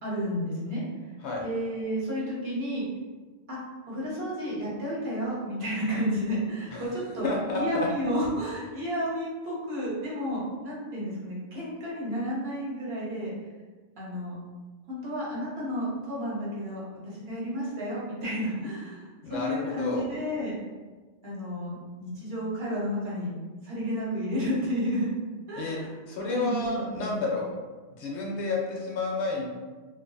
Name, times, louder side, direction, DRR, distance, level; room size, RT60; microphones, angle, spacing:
voice 1, 0.0-0.8 1.4-2.9 3.5-3.6 3.9-13.3 14.0-14.3 14.9-20.6 21.2-23.3 23.6-25.1 25.5-25.9 26.3-27.2, equal, 60° right, -6 dB, 1.1 m, -31 dB
voice 2, 7.2-7.9 19.2-20.1 25.5-25.8 26.1-27.5 28.0-29.5, left 3 dB, 75° left, -2 dB, 0.9 m, -30 dB
2.6 x 2.5 x 2.2 m, 1.3 s
omnidirectional pair, 1.2 m